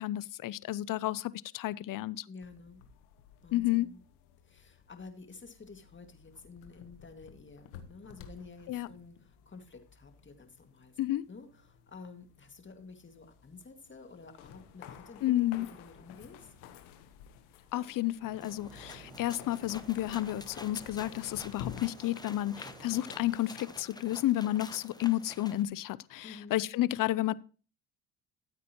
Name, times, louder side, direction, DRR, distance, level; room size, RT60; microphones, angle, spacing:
voice 1, 0.0-2.2 3.5-3.9 8.7-8.9 11.0-11.3 15.2-15.7 17.7-27.3, left 15 dB, 50° left, 0.5 m, -31 dB
voice 2, 2.3-2.8 3.4-4.0 4.4-11.0 11.3-16.5 26.2-26.6, left 4 dB, 25° left, 2.1 m, -51 dB
sound 1, 2.4-21.8, left 9 dB, 85° left, 1.2 m, -52 dB
sound 2, 18.2-23.2, right 1 dB, 85° right, 5.8 m, -54 dB
sound 3, 18.4-25.6, left 2 dB, 10° left, 1.0 m, -49 dB
14.0 x 8.2 x 3.0 m
supercardioid pair, 70°, 44 cm